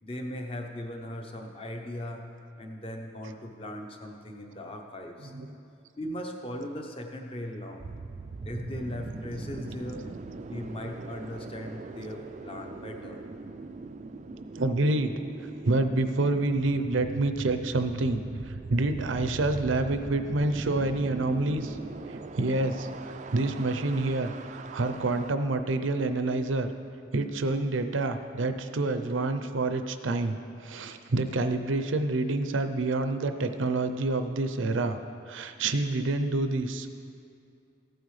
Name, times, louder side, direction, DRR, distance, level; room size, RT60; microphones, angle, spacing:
voice 1, 0.0-2.3 2.6-5.3 6.0-7.8 8.4-10.1 10.5-13.2, left 1 dB, 30° left, 3 dB, 0.8 m, -38 dB
voice 2, 5.2-5.5 9.6-9.7 14.5-15.1 15.6-21.8 22.1-26.7 27.1-35.0 35.3-36.9, right 2 dB, 80° right, 8 dB, 0.6 m, -28 dB
sound 1, 7.8-25.3, right 3 dB, 35° right, 0.3 m, -41 dB
15.0 x 9.0 x 3.2 m, 2.5 s
head